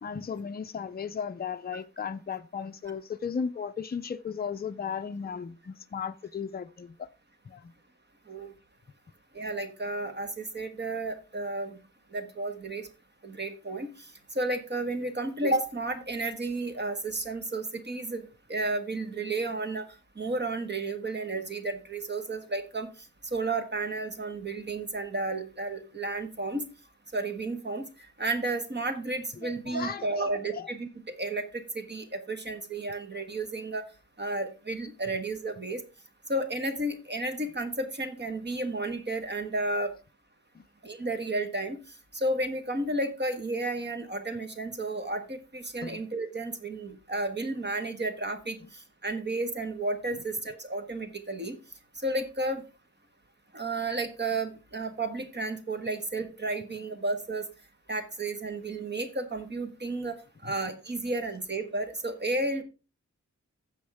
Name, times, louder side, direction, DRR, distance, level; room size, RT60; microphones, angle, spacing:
voice 1, 0.0-7.1 7.5-7.7 29.4-30.3 30.5-30.7 40.5-40.7 45.8-46.0, left 6 dB, 30° left, 0.5 m, -36 dB
voice 2, 9.3-11.8 12.1-12.9 13.2-19.9 20.1-22.9 23.3-26.7 27.1-27.9 28.2-30.9 31.2-33.8 34.2-35.8 36.3-39.9 40.8-41.8 42.1-51.6 52.0-52.6 53.5-57.5 57.9-60.1 60.4-62.6, right 2 dB, 35° right, 1.4 m, -32 dB
15.0 x 5.3 x 3.5 m
wide cardioid pair, 125°, 29 cm